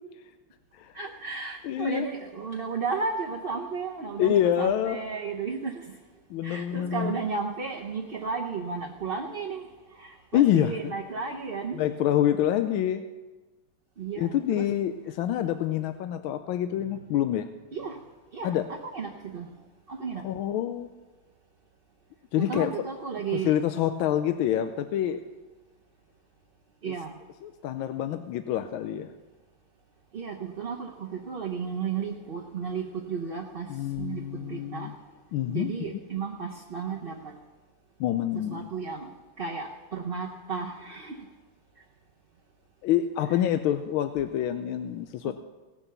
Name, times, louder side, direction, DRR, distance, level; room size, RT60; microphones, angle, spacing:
voice 1, 0.9-5.8 6.4-9.7 10.0-11.9 14.0-14.7 17.7-18.0 18.3-19.5 19.9-20.3 22.3-23.5 26.8-27.1 30.1-34.9 35.5-37.3 38.3-39.1 39.4-41.2 43.3-43.4 45.2-45.3, right 5 dB, 55° right, -1 dB, 0.6 m, -34 dB
voice 2, 1.6-2.1 4.2-5.0 6.3-7.1 10.3-10.9 11.7-13.0 14.2-17.5 18.4-18.6 20.2-20.9 22.3-22.7 23.3-25.2 26.9-27.0 27.4-29.1 33.7-34.9 35.3-36.0 38.0-38.7 42.8-45.3, left 11 dB, 85° left, 9 dB, 1.4 m, -27 dB
17.5 x 6.9 x 6.9 m, 1.2 s
omnidirectional pair, 2.2 m